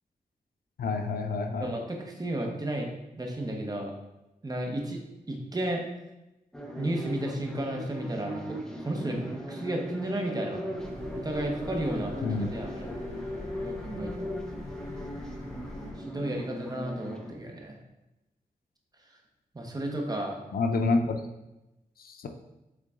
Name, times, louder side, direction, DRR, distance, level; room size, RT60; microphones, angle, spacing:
voice 1, 0.8-1.7 12.2-12.5 20.5-21.2 22.0-22.3, left 3 dB, 85° left, 5 dB, 0.6 m, -28 dB
voice 2, 1.6-2.9 3.2-3.9 4.4-5.8 6.8-10.6 11.1-12.9 13.5-14.3 16.1-17.8 19.5-20.4, right 1 dB, 25° right, 1 dB, 1.0 m, -33 dB
sound 1, 6.5-17.3, equal, 5° left, 0.9 m, -38 dB
sound 2, 10.8-15.9, left 1 dB, 50° left, 1.5 m, -44 dB
7.0 x 3.7 x 3.7 m, 0.97 s
wide cardioid pair, 120°, 15 cm